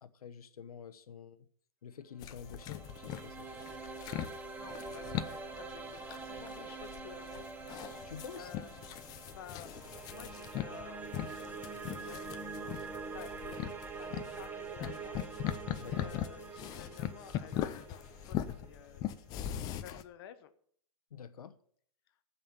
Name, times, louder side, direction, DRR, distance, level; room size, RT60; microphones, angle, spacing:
voice 1, 0.0-1.5 1.8-3.6 8.0-8.5 15.8-16.1 21.1-21.6, left 7 dB, 90° left, 1.0 m, -48 dB
sound 1, 2.2-20.0, left 11 dB, 20° left, 0.6 m, -41 dB
sound 2, 2.2-19.3, right 4 dB, 10° right, 0.9 m, -45 dB
voice 2, 4.3-7.9 8.4-8.8 9.2-12.8 13.1-13.6 13.9-19.0 19.6-20.5, left 10 dB, 40° left, 1.1 m, -53 dB
15.0 x 5.7 x 8.9 m
hypercardioid pair, 155°, 18 cm